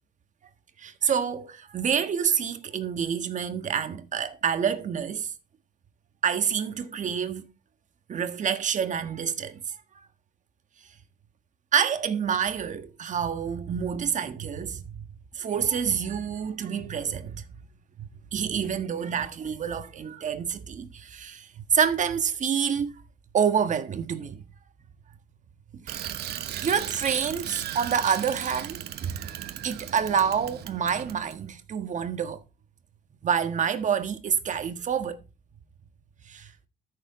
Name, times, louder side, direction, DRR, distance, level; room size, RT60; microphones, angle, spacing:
voice 1, 0.8-5.3 6.2-7.5 8.1-9.8 11.7-14.9 15.3-17.4 18.3-22.9 23.3-24.4 25.7-26.1 26.6-29.2 29.6-32.4 33.2-35.2 36.3-36.5, right 7 dB, 45° right, 1.5 m, -27 dB
Bicycle, 25.9-31.4, right 11 dB, 65° right, 1.1 m, -37 dB
13.0 x 7.0 x 4.2 m
cardioid pair, 105°, 18 cm